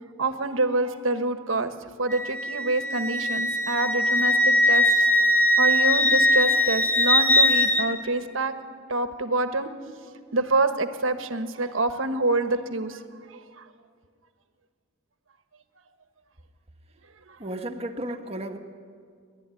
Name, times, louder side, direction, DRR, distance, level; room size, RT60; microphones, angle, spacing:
voice 1, 0.2-1.7 2.0-5.2 5.6-8.5 8.9-9.7 10.3-13.0 13.3-13.6, right 2 dB, 85° right, 9 dB, 1.4 m, -26 dB
Wind instrument woodwind instrument, 2.1-7.9, left 1 dB, 10° left, 1.7 m, -21 dB
voice 2, 17.4-18.6, right 1 dB, 30° right, 4 dB, 1.5 m, -33 dB
29.0 x 12.5 x 9.9 m, 2.1 s
head